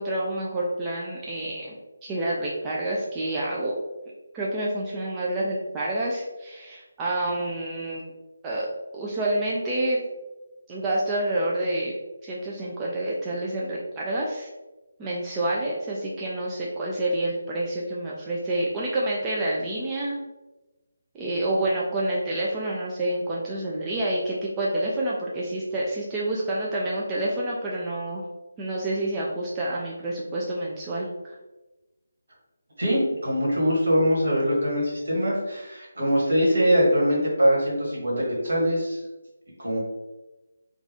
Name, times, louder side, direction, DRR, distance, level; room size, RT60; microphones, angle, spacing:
voice 1, 0.0-3.7 4.3-8.0 8.4-8.7 8.9-10.0 10.7-11.9 12.2-14.5 15.0-20.2 21.1-28.2 28.6-31.4, right 1 dB, 15° right, -5 dB, 0.3 m, -28 dB
voice 2, 32.8-39.0 39.6-39.8, equal, 50° right, -4 dB, 1.4 m, -23 dB
3.8 x 2.3 x 2.8 m, 1.1 s
figure-of-eight pair, 150°, 0 cm